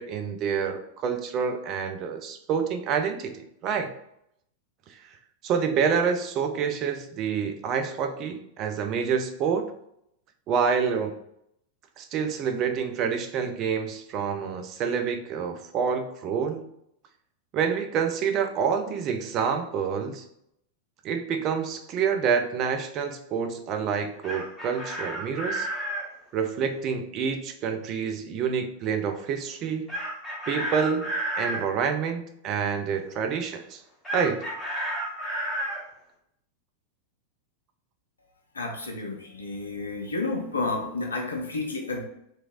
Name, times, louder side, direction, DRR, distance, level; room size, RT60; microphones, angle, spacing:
voice 1, 0.0-3.3 3.6-3.9 5.4-9.7 10.5-11.1 12.0-16.6 17.5-20.2 21.0-25.7 26.3-29.9 30.5-31.1 31.4-33.8 34.1-34.4, right 6 dB, 35° right, 6 dB, 0.4 m, -27 dB
Chicken rooster, 24.0-26.1 29.9-31.6 34.0-35.8, right 1 dB, 5° left, 1.2 m, -31 dB
voice 2, 38.5-42.0, left 3 dB, 75° left, 1 dB, 0.6 m, -31 dB
2.8 x 2.7 x 2.4 m, 0.74 s
figure-of-eight pair, 90°, 0 cm